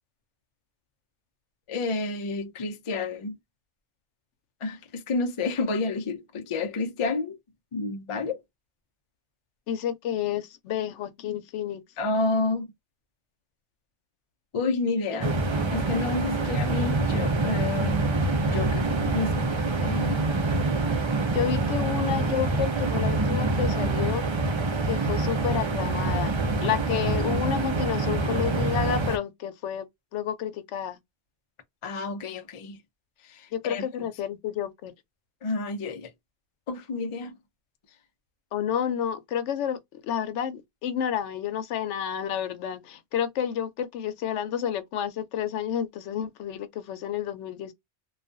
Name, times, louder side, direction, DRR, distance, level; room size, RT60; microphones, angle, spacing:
voice 1, 1.7-3.3 4.6-7.3 7.7-8.4 12.0-12.7 14.5-15.3 15.7-18.1 18.5-19.5 19.8-20.3 31.8-32.8 33.3-33.9 35.4-36.1 36.7-37.3, left 3 dB, 50° left, 0.4 m, -30 dB
voice 2, 9.7-11.8 15.2-15.3 16.4-16.5 21.3-24.2 24.9-26.3 26.6-29.9 30.1-31.0 33.5-34.9 38.5-47.7, left 9 dB, 85° left, 0.9 m, -30 dB
sound 1, 15.2-29.2, right 2 dB, 50° right, 0.3 m, -26 dB
2.4 x 2.2 x 2.5 m
omnidirectional pair, 1.2 m